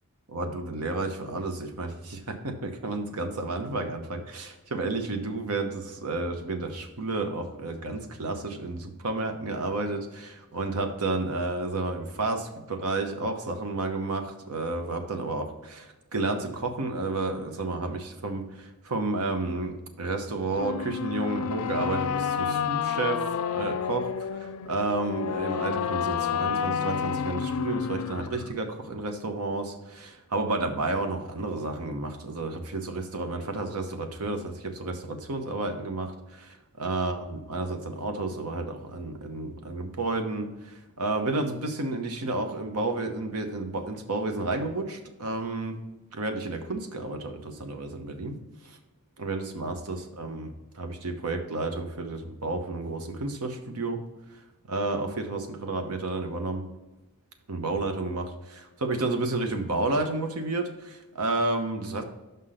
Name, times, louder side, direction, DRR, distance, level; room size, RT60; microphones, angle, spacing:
voice 1, 0.3-23.2 23.5-45.8 46.1-48.4 49.2-54.0 54.6-56.7 57.5-62.0, right 2 dB, 80° right, 6 dB, 0.9 m, -31 dB
sound 1, 20.5-28.5, left 7 dB, 75° left, 0.4 m, -30 dB
5.8 x 5.4 x 5.0 m, 1.0 s
head